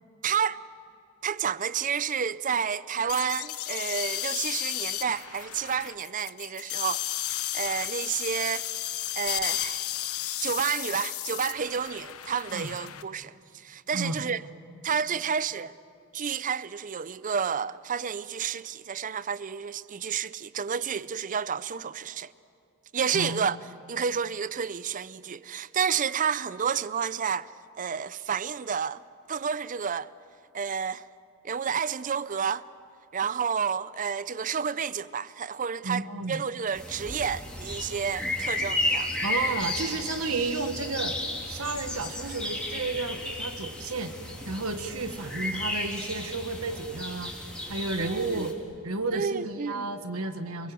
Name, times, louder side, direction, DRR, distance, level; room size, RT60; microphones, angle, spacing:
voice 1, 0.2-0.6 1.2-8.7 9.1-9.8 10.4-14.4 14.8-15.7 16.1-22.3 22.9-23.6 23.9-27.5 27.8-29.0 29.3-30.1 30.5-31.0 31.4-32.7 33.1-39.1 48.0-48.5 49.1-49.9, right 7 dB, 35° right, 0.5 m, -30 dB
sound 1, 3.1-13.0, left 13 dB, 75° left, 1.0 m, -33 dB
voice 2, 13.9-14.2 23.1-23.5 35.8-36.4 39.2-41.1 41.5-44.1 44.5-47.3 47.7-48.6 48.8-50.7, right 3 dB, 70° right, 1.5 m, -32 dB
sound 2, 36.7-48.5, left 1 dB, 5° left, 3.5 m, -33 dB
29.5 x 21.0 x 7.7 m
head